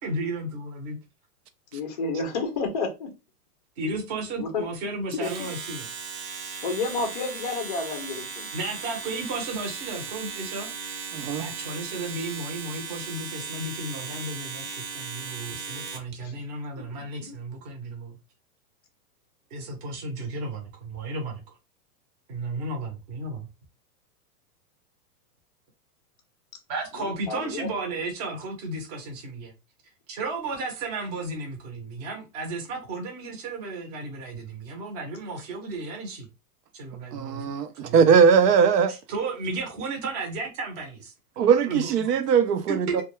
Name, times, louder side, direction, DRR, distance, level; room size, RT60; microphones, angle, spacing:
voice 1, 0.0-1.0 3.8-5.9 8.5-10.7 11.4-18.2 19.5-21.4 22.3-23.5 26.7-29.5 30.1-36.3 36.7-38.2 38.9-41.1 41.7-42.2 42.7-43.0, right 2 dB, 25° right, 0.7 m, -34 dB
voice 2, 1.7-3.1 4.4-4.6 5.1-5.5 6.6-8.5 16.2-16.4 16.9-17.4 27.0-27.7, left 4 dB, 30° left, 0.4 m, -31 dB
Domestic sounds home sounds, 5.1-16.1, right 5 dB, 60° right, 0.9 m, -37 dB
voice 3, 11.1-11.4 37.1-38.9 41.4-43.0, right 6 dB, 85° right, 0.7 m, -20 dB
2.2 x 2.2 x 2.9 m
hypercardioid pair, 160°, 46 cm